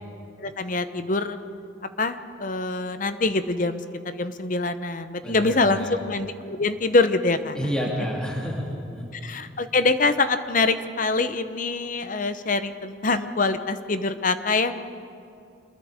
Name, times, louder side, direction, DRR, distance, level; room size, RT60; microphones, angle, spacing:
voice 1, 0.4-1.4 2.0-3.8 4.0-7.6 9.2-14.8, left 3 dB, 45° left, 11 dB, 0.8 m, -24 dB
voice 2, 5.2-6.0 7.5-9.1, equal, 5° left, -3 dB, 2.8 m, -30 dB
25.5 x 21.0 x 5.0 m, 2.5 s
head